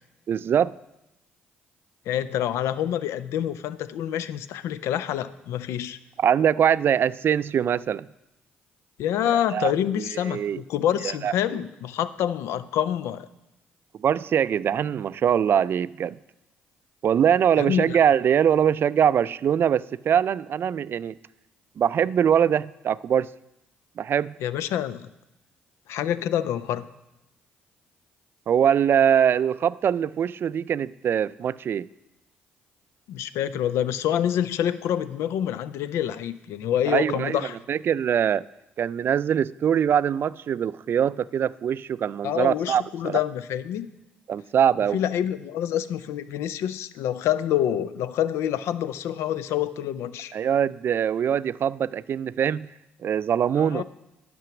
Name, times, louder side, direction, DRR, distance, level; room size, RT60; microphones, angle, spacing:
voice 1, 0.3-0.7 6.2-8.1 9.5-10.6 11.0-11.6 14.0-16.2 17.0-21.2 21.8-23.3 24.0-24.3 28.5-31.9 36.9-37.4 37.7-38.4 38.8-43.2 44.3-45.0 50.3-52.7 53.0-53.8, right 8 dB, 50° right, 18 dB, 0.3 m, -23 dB
voice 2, 2.1-6.0 9.0-13.3 17.6-18.0 24.4-25.1 25.9-26.9 33.1-37.6 42.2-43.9 44.9-50.3 53.6-53.8, left 10 dB, 75° left, 15 dB, 0.5 m, -27 dB
10.5 x 6.0 x 5.9 m, 0.92 s
hypercardioid pair, 55°, 5 cm